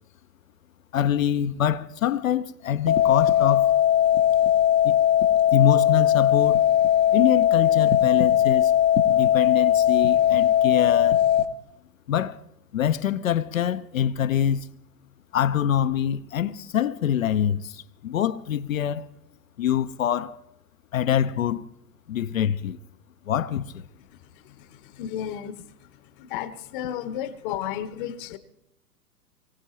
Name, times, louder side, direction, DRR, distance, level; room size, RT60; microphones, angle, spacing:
voice 1, 0.9-3.8 4.8-5.0 5.5-6.6 7.1-8.7 9.1-11.2 12.1-12.4 12.7-14.7 15.3-19.1 19.6-20.4 20.9-21.6 22.1-22.8 23.3-23.8, left 9 dB, 55° left, 0.8 m, -25 dB
sound 1, 2.9-11.5, left 11 dB, 85° left, 1.6 m, -19 dB
voice 2, 24.4-25.6 26.2-28.4, left 10 dB, 30° left, 1.0 m, -33 dB
24.0 x 16.5 x 3.0 m
figure-of-eight pair, 115°, 49 cm